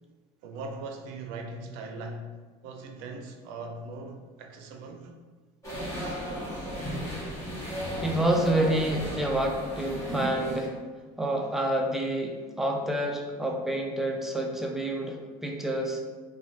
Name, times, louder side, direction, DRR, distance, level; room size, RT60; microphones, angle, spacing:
voice 1, 0.4-2.4 2.6-5.1, right 2 dB, 75° right, 5 dB, 0.5 m, -40 dB
sound 1, 5.6-10.7, equal, 15° left, 1.4 m, -34 dB
voice 2, 8.0-10.8 11.2-16.0, right 1 dB, ahead, 1 dB, 0.4 m, -28 dB
3.1 x 2.2 x 2.7 m, 1.4 s
supercardioid pair, 95°, 18 cm